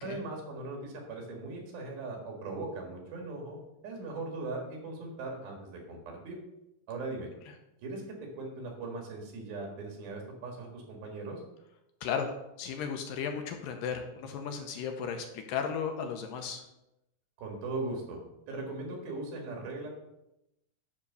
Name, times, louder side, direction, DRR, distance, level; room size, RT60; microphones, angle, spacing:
voice 1, 0.0-3.6 3.8-6.4 6.9-7.3 7.8-11.4 17.4-18.2 18.5-19.9, right 3 dB, 75° right, 1 dB, 3.7 m, -39 dB
voice 2, 12.0-16.6, left 6 dB, 75° left, 5 dB, 2.3 m, -35 dB
9.8 x 3.7 x 6.7 m, 0.88 s
omnidirectional pair, 4.3 m